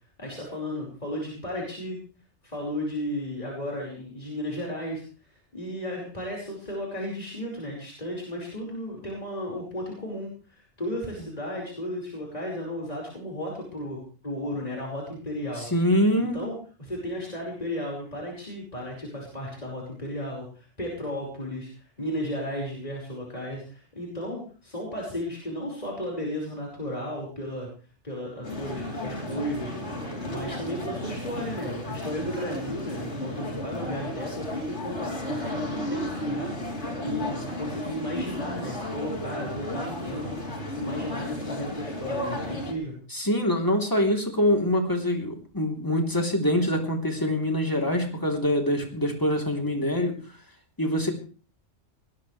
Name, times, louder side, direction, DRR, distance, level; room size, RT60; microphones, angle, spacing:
voice 1, 0.2-2.0 2.4-5.0 5.5-15.7 16.3-27.7 28.0-29.9 30.3-36.5 37.0-42.9, equal, 35° left, -2 dB, 5.3 m, -34 dB
voice 2, 15.7-16.4 43.1-50.2 50.8-51.1, left 1 dB, 15° left, 2 dB, 3.4 m, -24 dB
sound 1, 28.4-42.7, left 1 dB, 70° left, 3.8 m, -33 dB
21.0 x 18.0 x 3.3 m, 0.37 s
omnidirectional pair, 1.2 m